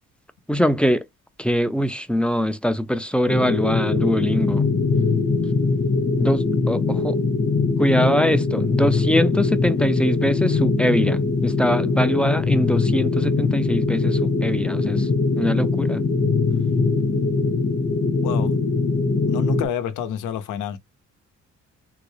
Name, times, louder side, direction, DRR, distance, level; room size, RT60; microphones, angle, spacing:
voice 1, 0.5-1.0 1.4-4.6 6.2-7.2 7.8-15.1 15.4-16.0, equal, 5° left, 0.4 m, -23 dB
sound 1, 3.3-19.7, left 4 dB, 45° left, 1.0 m, -21 dB
voice 2, 18.2-18.5 19.3-20.8, left 8 dB, 80° left, 0.7 m, -28 dB
3.8 x 2.2 x 3.2 m
cardioid pair, 90°, 30 cm